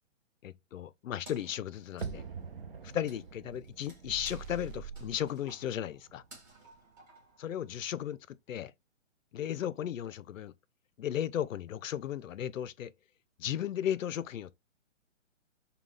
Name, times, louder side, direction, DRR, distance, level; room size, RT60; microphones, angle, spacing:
voice 1, 0.4-2.2 2.8-6.2 7.4-8.7 9.3-10.5 11.0-12.9 13.4-14.5, left 10 dB, 75° left, 0.5 m, -35 dB
Wood, 1.2-8.0, right 2 dB, 15° right, 1.2 m, -58 dB
sound 1, 2.0-6.9 7.2-7.3, right 6 dB, 45° right, 0.6 m, -46 dB
sound 2, 4.0-5.2, right 6 dB, 80° right, 0.8 m, -44 dB
5.4 x 2.3 x 3.1 m
hypercardioid pair, 170°, 39 cm